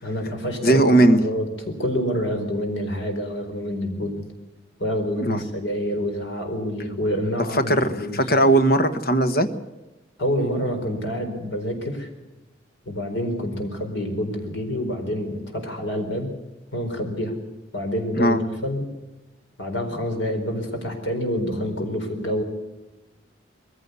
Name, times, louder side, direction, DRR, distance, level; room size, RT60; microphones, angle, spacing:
voice 1, 0.0-4.2 4.8-8.2 10.2-12.1 12.9-16.3 16.7-17.3 17.7-18.4 18.6-18.8 19.6-22.4, equal, 80° left, 4 dB, 4.5 m, -27 dB
voice 2, 0.6-1.2 5.3-5.4 7.5-9.5 18.2-18.4, right 1 dB, 55° left, 9 dB, 1.4 m, -18 dB
21.5 x 15.0 x 8.3 m, 1.1 s
head